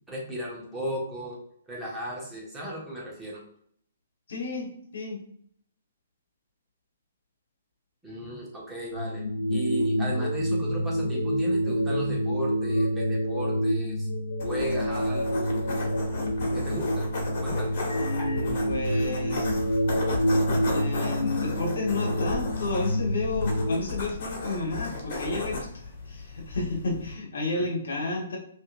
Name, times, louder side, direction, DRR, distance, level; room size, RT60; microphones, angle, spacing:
voice 1, 0.1-1.4 1.7-3.4 8.0-9.2 9.5-14.1 14.4-15.8 16.5-17.1 17.4-17.8 27.5-27.7, right 1 dB, 10° right, -5 dB, 1.4 m, -35 dB
voice 2, 4.3-5.2 18.0-19.6 20.7-28.4, left 3 dB, 70° left, 0 dB, 1.3 m, -32 dB
sound 1, 8.9-23.8, equal, 85° left, 0.4 m, -27 dB
sound 2, 14.4-27.1, left 2 dB, 50° left, 1.5 m, -35 dB
5.6 x 2.9 x 2.5 m, 0.63 s
hypercardioid pair, 130°, 0 cm